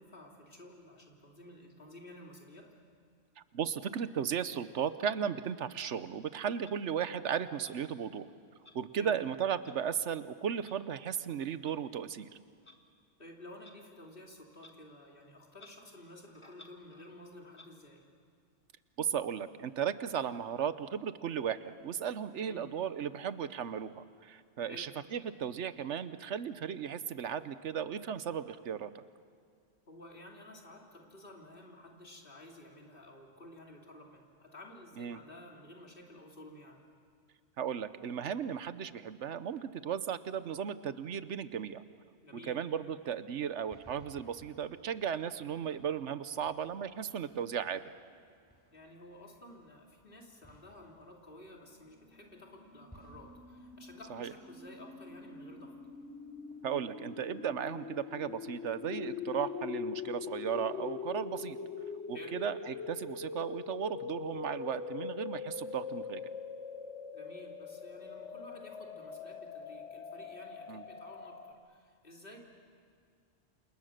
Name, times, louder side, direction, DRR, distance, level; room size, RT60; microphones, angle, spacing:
voice 1, 0.0-2.8 9.0-9.2 13.2-18.0 22.4-22.6 24.7-24.9 29.9-36.8 42.2-42.6 48.7-55.8 62.1-62.4 67.1-71.4 71.7-72.4, left 1 dB, 50° left, 0 dB, 3.4 m, -52 dB
voice 2, 3.4-8.3 8.7-12.3 19.0-29.0 35.0-35.2 37.6-41.8 42.4-47.9 54.1-54.3 56.6-61.6 62.1-66.2 70.7-70.8, right 8 dB, 85° right, 13 dB, 1.2 m, -36 dB
Clock, 6.7-6.8 7.6-7.8 8.6-8.8 9.6-9.8 10.6-10.8 11.7-11.8 12.6-12.8 13.6-13.8 14.6-14.8 15.0-15.1 15.5-15.8 16.2-17.1 17.5-17.7, left 2 dB, 25° left, 1.6 m, -57 dB
sound 1, 43.3-56.8, equal, 10° left, 4.6 m, -64 dB
sound 2, 52.4-71.5, left 6 dB, 85° left, 1.5 m, -43 dB
29.0 x 27.5 x 6.6 m, 2.2 s
omnidirectional pair, 1.2 m